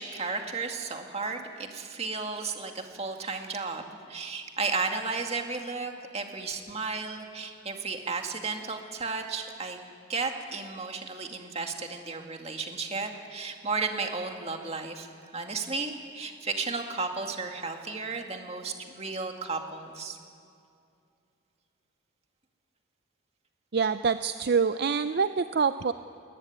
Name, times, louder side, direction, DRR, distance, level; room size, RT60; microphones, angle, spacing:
voice 1, 0.0-9.8 10.1-15.1 15.3-20.2, right 4 dB, 30° right, 4 dB, 2.1 m, -34 dB
voice 2, 23.7-25.9, right 5 dB, 55° right, 11 dB, 0.5 m, -26 dB
21.0 x 19.5 x 9.7 m, 2.4 s
head